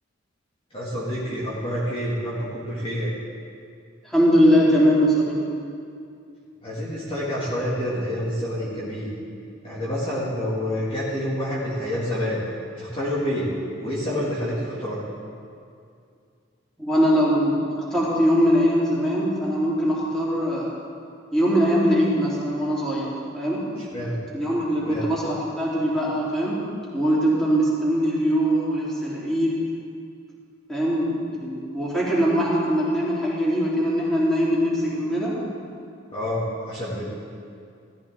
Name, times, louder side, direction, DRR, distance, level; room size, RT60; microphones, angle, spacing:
voice 1, 0.7-3.1 6.6-9.1 9.6-12.4 12.8-13.5 13.8-15.0 23.8-24.2 24.8-25.1 36.1-37.1, equal, 30° left, -8 dB, 2.3 m, -28 dB
voice 2, 4.0-5.4 16.8-20.7 21.3-23.7 24.3-29.6 30.7-35.4, equal, 5° left, -8 dB, 3.6 m, -22 dB
16.0 x 14.0 x 3.7 m, 2.4 s
head